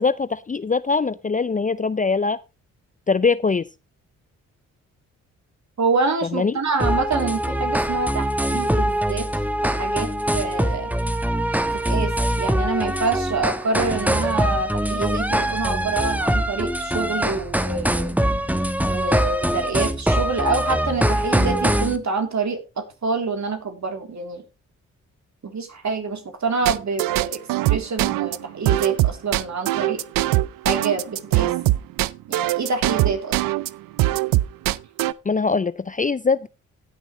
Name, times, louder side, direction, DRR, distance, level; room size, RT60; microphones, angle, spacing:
voice 1, 0.0-2.4 3.1-3.7 6.3-6.5 35.3-36.5, left 4 dB, 25° left, 0.5 m, -22 dB
voice 2, 5.8-9.3 9.6-10.9 11.8-18.2 18.9-24.4 25.4-27.4 27.7-30.0 30.6-31.5 32.3-33.4, right 4 dB, 55° right, 3.4 m, -26 dB
sound 1, 6.8-22.0, right 1 dB, 5° right, 1.2 m, -23 dB
sound 2, 26.6-33.7 34.0-35.1, right 16 dB, 75° right, 0.5 m, -21 dB
17.5 x 6.3 x 3.2 m
supercardioid pair, 45°, 34 cm